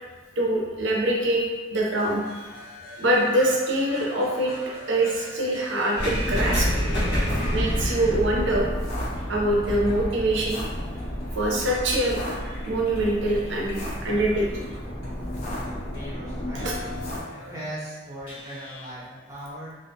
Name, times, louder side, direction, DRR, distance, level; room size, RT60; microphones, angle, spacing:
voice 1, 0.4-1.4 1.7-2.4 3.0-4.5 4.9-6.7 7.5-8.7 9.3-10.6 11.3-12.2 12.7-14.7 16.6-16.7, right 1 dB, 65° right, -3 dB, 0.5 m, -24 dB
sound 1, 1.9-8.3 9.2-16.0 16.5-17.6 18.3-18.8, equal, 90° left, 1.2 m, -41 dB
sound 2, 6.0-11.9, equal, 55° left, 0.8 m, -28 dB
sound 3, 7.3-17.2, equal, 35° left, 0.5 m, -33 dB
voice 2, 15.9-16.7 17.3-19.7, equal, 15° right, -9 dB, 0.7 m, -38 dB
2.5 x 2.1 x 2.7 m, 1.4 s
head